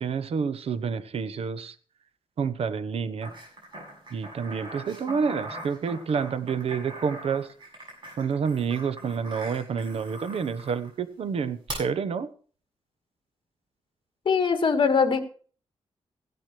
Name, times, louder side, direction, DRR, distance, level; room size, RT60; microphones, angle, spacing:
voice 1, 0.0-1.7 2.4-3.3 4.1-7.5 8.2-12.3, right 6 dB, 70° right, 13 dB, 1.0 m, -29 dB
sound 1, 3.2-10.9 11.7-11.8, right 1 dB, 50° right, 6.9 m, -42 dB
voice 2, 14.3-15.2, left 5 dB, 50° left, 8 dB, 1.7 m, -21 dB
16.0 x 12.0 x 3.2 m, 0.42 s
wide cardioid pair, 145°, 10 cm